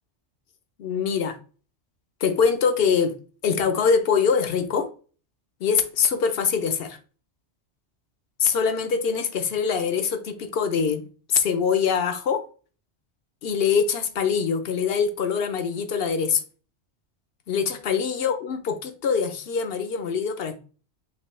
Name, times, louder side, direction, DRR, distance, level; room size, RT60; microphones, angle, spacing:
voice 1, 0.8-1.4 2.2-3.1 3.4-4.9 5.6-7.0 8.4-12.4 13.4-16.4 17.5-20.6, left 6 dB, 60° left, 0.8 m, -23 dB
5.9 x 2.7 x 3.2 m
omnidirectional pair, 1.2 m